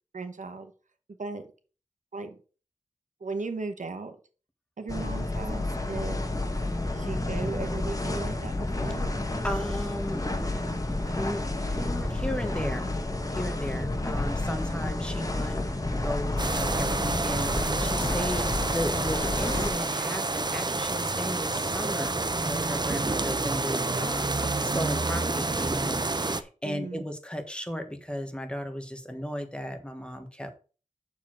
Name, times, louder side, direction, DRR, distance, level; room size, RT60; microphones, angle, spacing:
voice 1, 0.1-0.7 1.2-1.4 2.1-2.4 3.2-4.2 4.8-6.3 6.9-9.1 23.9-24.5 26.6-27.0, right 3 dB, 75° right, 8 dB, 1.0 m, -37 dB
sound 1, 4.9-19.7, left 2 dB, 25° left, 1.3 m, -30 dB
voice 2, 9.4-12.9 13.3-15.6 16.0-24.3 24.6-30.5, equal, 10° left, 6 dB, 1.4 m, -35 dB
sound 2, 16.4-26.4, right 3 dB, 35° right, 0.7 m, -29 dB
6.9 x 4.6 x 6.1 m, 0.37 s
wide cardioid pair, 60°, 13 cm